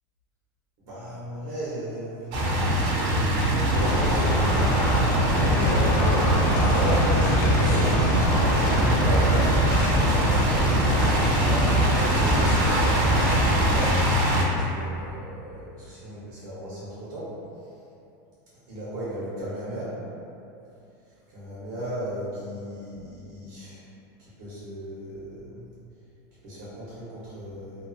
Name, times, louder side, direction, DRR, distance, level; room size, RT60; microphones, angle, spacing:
voice 1, 0.8-4.7 5.2-8.0 8.5-11.9 12.5-17.3 17.6-17.7 18.7-20.0 21.0-23.8 24.2-25.7 26.4-27.8, equal, 70° right, -10 dB, 0.8 m, -36 dB
sound 1, 2.3-14.4, right 1 dB, 40° right, 0.4 m, -22 dB
sound 2, 3.7-13.9, left 1 dB, 55° left, 0.4 m, -26 dB
2.5 x 2.4 x 2.3 m, 2.7 s
supercardioid pair, 160°, 10 cm